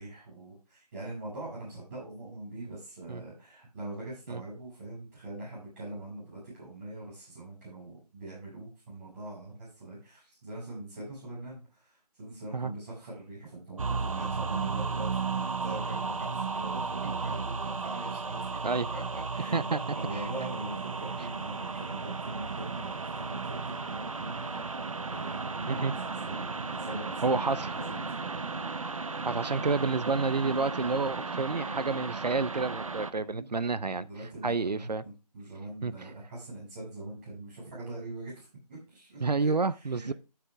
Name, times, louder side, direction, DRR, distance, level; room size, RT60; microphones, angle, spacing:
voice 1, 0.0-18.6 18.9-24.6 25.0-28.0 28.4-28.6 33.2-33.6 33.9-40.1, right 1 dB, 30° right, 5.8 m, -43 dB
sound 1, 13.8-33.1, right 4 dB, 55° right, 0.9 m, -34 dB
voice 2, 27.2-27.7 29.2-34.1 34.4-35.0 35.8-36.1 39.2-40.1, right 4 dB, 80° right, 0.7 m, -29 dB
13.5 x 4.9 x 3.5 m
figure-of-eight pair, 160°, 21 cm